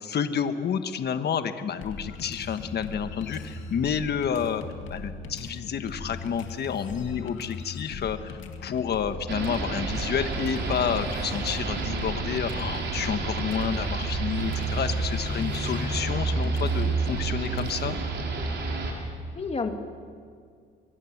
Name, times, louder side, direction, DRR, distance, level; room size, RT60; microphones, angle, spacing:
voice 1, 0.0-4.6 4.9-18.0, left 7 dB, 55° left, 9 dB, 1.4 m, -30 dB
sound 1, 1.8-18.1, left 4 dB, 80° left, 2.2 m, -39 dB
sound 2, 9.3-18.9, right 4 dB, 60° right, 4.8 m, -29 dB
voice 2, 18.9-19.7, left 4 dB, 30° left, 4 dB, 2.8 m, -32 dB
24.0 x 23.0 x 7.4 m, 2.1 s
cardioid pair, 90°, 20 cm